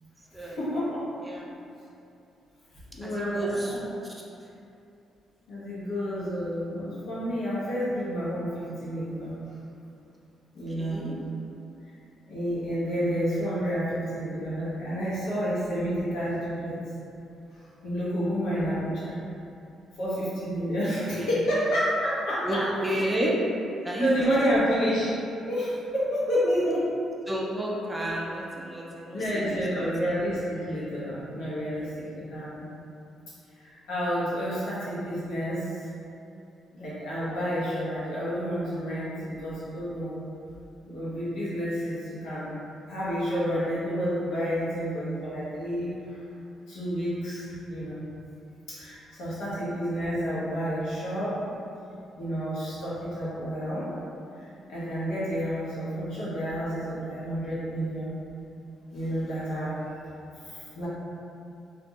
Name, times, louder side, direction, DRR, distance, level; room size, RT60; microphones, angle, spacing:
voice 1, 0.4-1.0 2.9-3.8 5.5-9.4 10.5-11.1 12.3-16.8 17.8-19.2 20.0-22.7 24.0-25.2 25.5-26.9 29.1-32.6 33.6-35.8 36.7-40.2 40.8-42.5 42.9-46.2 46.7-48.0 48.7-51.4 52.2-53.9 54.4-58.1 58.9-59.8 60.0-60.1 60.4-60.9, equal, 85° left, -10 dB, 0.9 m, -30 dB
voice 2, 3.0-3.7 4.0-4.1 10.8-11.2 21.2-21.3 22.4-23.4 23.8-24.3 27.3-29.9, right 1 dB, 15° right, -3 dB, 0.4 m, -31 dB
2.5 x 2.1 x 2.9 m, 2.7 s
cardioid pair, 90°, 0 cm